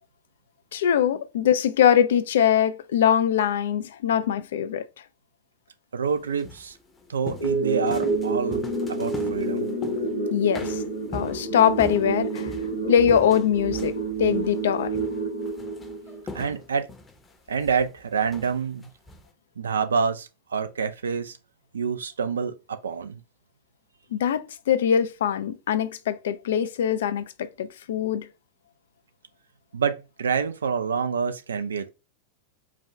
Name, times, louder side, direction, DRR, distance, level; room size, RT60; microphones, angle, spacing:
voice 1, 0.7-4.8 10.3-10.8 11.1-12.5 12.9-14.9 24.1-28.3, left 9 dB, 60° left, 0.4 m, -22 dB
voice 2, 5.9-6.7 7.1-8.6 8.9-9.7 16.3-16.9 17.5-18.9 19.6-21.4 21.7-23.2 29.7-31.9, right 6 dB, 70° right, 0.4 m, -27 dB
sound 1, 6.1-10.2 10.5-19.3, left 2 dB, 15° left, 0.7 m, -42 dB
sound 2, 7.4-16.4, right 3 dB, 90° right, 1.3 m, -29 dB
4.8 x 2.3 x 3.1 m
figure-of-eight pair, 90°, 0 cm